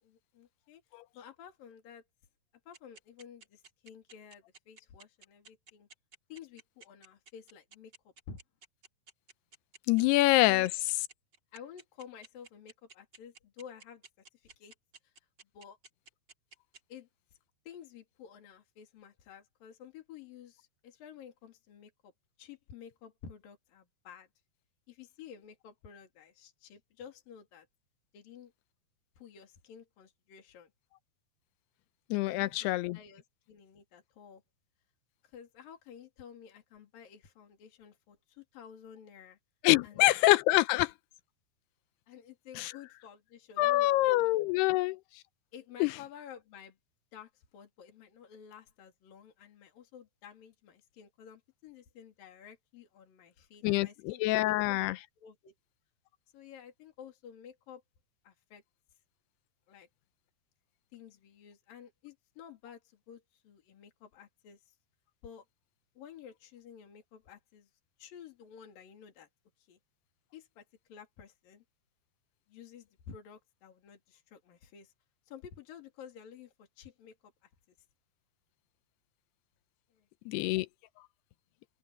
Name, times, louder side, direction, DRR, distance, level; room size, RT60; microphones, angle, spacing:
voice 1, 0.0-0.8 1.1-2.0 2.7-5.9 6.3-7.9 8.3-8.4 10.4-10.7 11.5-14.0 14.3-14.7 15.0-15.1 15.5-15.8 16.9-17.1 17.7-22.1 22.4-24.3 24.9-27.7 28.1-28.5 29.2-30.7 32.3-34.4 35.2-39.4 39.8-40.1 40.7-40.8 42.1-44.8 45.5-46.8 47.1-54.8 55.2-55.5 56.3-57.8 58.2-58.6 59.7-59.9 60.9-64.7 65.2-65.4 66.0-67.7 68.0-69.3 69.6-69.8 70.3-71.6 72.5-74.9 75.3-77.5 79.9-80.5, left 8 dB, 65° left, 4.5 m, -52 dB
sound 1, 2.7-16.8, right 4 dB, 25° right, 4.3 m, -54 dB
voice 2, 9.9-10.7 32.1-33.0 39.6-40.9 42.6-42.7 43.6-45.0 45.8-45.9 53.6-55.0 80.3-80.7, left 18 dB, 90° left, 2.8 m, -25 dB
open air
omnidirectional pair, 4.5 m